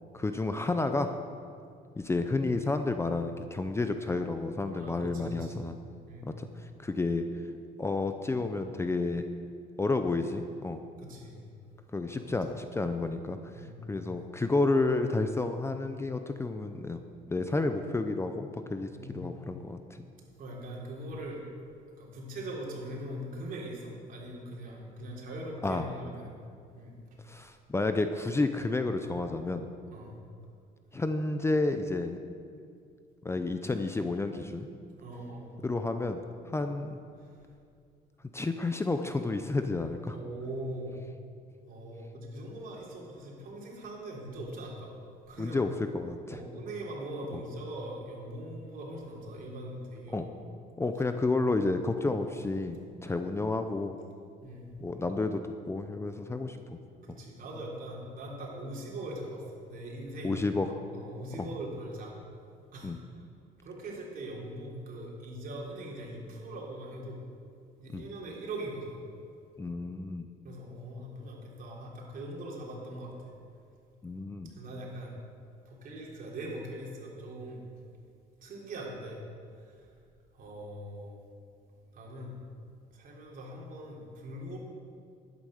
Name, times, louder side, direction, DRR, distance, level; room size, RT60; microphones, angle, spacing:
voice 1, 0.1-1.2 2.0-5.7 6.3-7.2 7.8-9.3 9.8-10.8 11.9-17.0 17.3-20.0 25.6-25.9 27.3-29.7 30.9-32.2 33.2-34.7 35.6-36.2 36.5-37.0 38.3-40.1 45.4-46.4 50.1-50.3 50.8-54.0 54.8-56.6 57.1-57.2 60.2-60.7 62.8-63.0 67.9-68.0 69.6-70.3 74.0-74.5, left 3 dB, 15° left, 7 dB, 0.6 m, -31 dB
voice 2, 4.7-5.6 6.1-6.3 11.0-11.4 12.1-12.3 13.5-14.0 18.9-19.6 20.4-21.4 22.0-27.0 27.3-27.4 29.9-30.2 35.0-35.6 37.2-37.4 40.1-41.0 41.7-44.9 45.3-45.7 46.3-50.2 54.4-54.6 57.0-62.2 62.7-62.9 63.6-67.2 67.8-69.0 70.4-73.3 74.5-75.1 75.7-77.6 78.4-79.2 79.6-79.9 80.3-81.2 81.9-82.4 82.9-84.6, right 1 dB, 55° right, -2 dB, 3.5 m, -41 dB
11.5 x 9.2 x 6.6 m, 2.3 s
cardioid pair, 110°, 17 cm